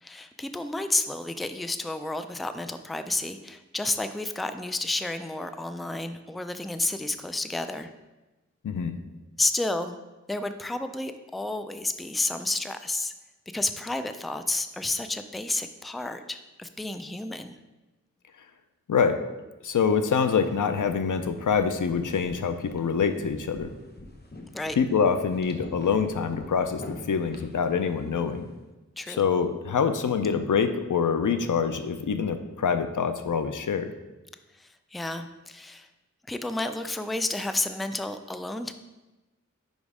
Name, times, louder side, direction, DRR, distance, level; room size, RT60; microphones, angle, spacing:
voice 1, 0.0-7.9 9.4-10.0 10.3-13.1 13.5-17.5 24.5-24.8 29.0-29.2 34.5-35.9 36.3-38.7, left 2 dB, ahead, 9 dB, 0.3 m, -31 dB
voice 2, 8.6-9.0 18.9-19.2 19.6-23.7 24.8-28.5 29.1-33.9, left 6 dB, 85° left, 9 dB, 0.5 m, -25 dB
sound 1, 20.3-28.5, left 1 dB, 30° left, 0.9 m, -46 dB
5.2 x 5.1 x 4.9 m, 1.1 s
wide cardioid pair, 65°, 30 cm